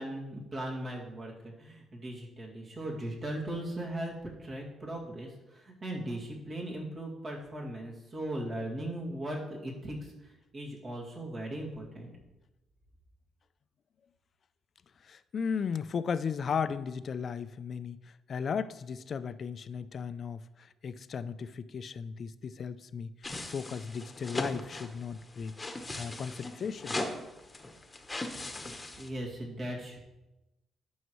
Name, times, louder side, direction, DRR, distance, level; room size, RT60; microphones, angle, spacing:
voice 1, 0.0-12.1 29.0-30.1, right 1 dB, 45° right, -3 dB, 2.2 m, -38 dB
voice 2, 15.0-23.1 23.5-25.5 26.0-27.0, left 6 dB, 50° left, 13 dB, 0.4 m, -36 dB
sound 1, 23.2-29.1, left 2 dB, 20° left, 1.1 m, -39 dB
12.5 x 6.4 x 3.1 m, 1.0 s
cardioid pair, 90°, 0 cm